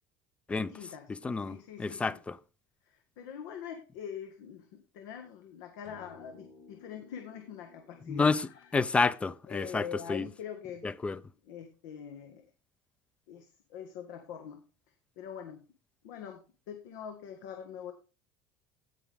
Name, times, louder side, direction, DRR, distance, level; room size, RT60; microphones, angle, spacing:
voice 1, 0.5-1.1 1.5-2.2 2.9-4.7 4.9-8.7 9.5-10.9 11.5-12.4 13.3-14.6 15.1-15.6 16.0-17.9, left 8 dB, 90° left, 1.7 m, -44 dB
voice 2, 1.1-2.4 8.1-10.3 10.8-11.2, left 4 dB, 10° left, 0.5 m, -30 dB
sound 1, 5.8-10.4, left 3 dB, 65° left, 6.5 m, -58 dB
16.5 x 5.7 x 3.6 m
cardioid pair, 150°, 10 cm